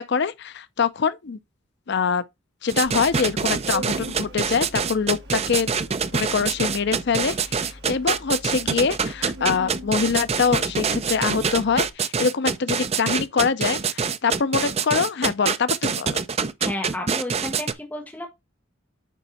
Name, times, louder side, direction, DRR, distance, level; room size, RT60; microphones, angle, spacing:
voice 1, 0.0-1.4 1.9-2.2 2.6-5.8 6.1-16.2, left 5 dB, 55° left, 0.5 m, -24 dB
sound 1, 2.7-17.7, right 6 dB, 30° right, 0.5 m, -25 dB
Organ, 2.8-11.9, equal, 50° right, 2.0 m, -42 dB
voice 2, 16.6-18.3, left 1 dB, 10° left, 1.2 m, -32 dB
9.2 x 3.6 x 4.1 m
head